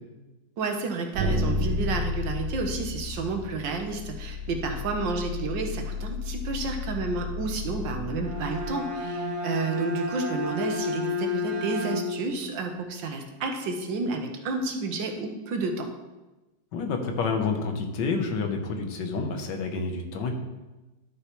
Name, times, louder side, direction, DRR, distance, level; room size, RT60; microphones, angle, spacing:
voice 1, 0.6-15.9, right 4 dB, 85° right, 4 dB, 1.7 m, -31 dB
sound 1, 1.1-8.7, left 3 dB, 65° right, 1.3 m, -32 dB
Bowed string instrument, 8.1-12.4, left 3 dB, 45° right, 1.1 m, -31 dB
voice 2, 16.7-20.4, left 4 dB, 75° left, 5 dB, 1.6 m, -29 dB
11.5 x 6.6 x 3.1 m, 1.1 s
omnidirectional pair, 1.9 m